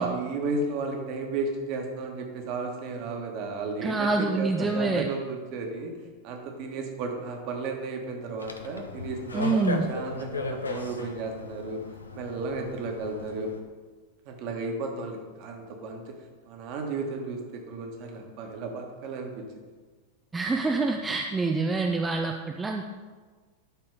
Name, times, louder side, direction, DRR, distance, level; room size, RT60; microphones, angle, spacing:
voice 1, 0.0-5.9 6.2-11.8 12.1-13.5 14.3-16.0 16.5-19.5, right 3 dB, 45° right, 2 dB, 1.5 m, -33 dB
voice 2, 3.8-5.1 9.3-9.8 20.3-22.8, right 3 dB, 15° right, 2 dB, 0.6 m, -26 dB
sound 1, 8.4-13.6, left 3 dB, 75° left, 0.7 m, -36 dB
12.0 x 4.4 x 4.9 m, 1.4 s
figure-of-eight pair, 90°, 0 cm